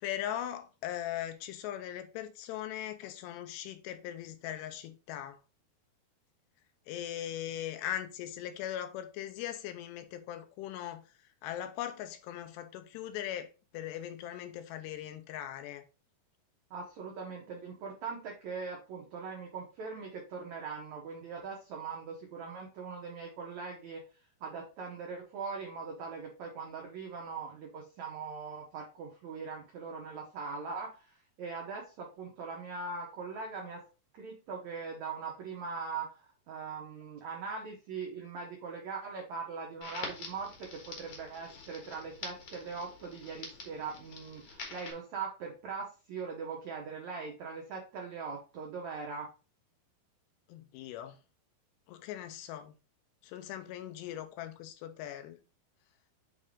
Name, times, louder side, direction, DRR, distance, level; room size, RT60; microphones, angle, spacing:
voice 1, 0.0-5.4 6.9-11.0 11.4-13.5 13.7-15.8 50.5-51.2 51.9-52.7 53.2-55.4, left 11 dB, 85° left, 2.9 m, -40 dB
voice 2, 16.7-24.0 24.4-33.8 34.1-49.3, right 5 dB, 80° right, 1.6 m, -41 dB
Crackle, 39.8-44.9, left 3 dB, 60° left, 1.5 m, -46 dB
7.8 x 3.7 x 3.6 m
omnidirectional pair, 4.8 m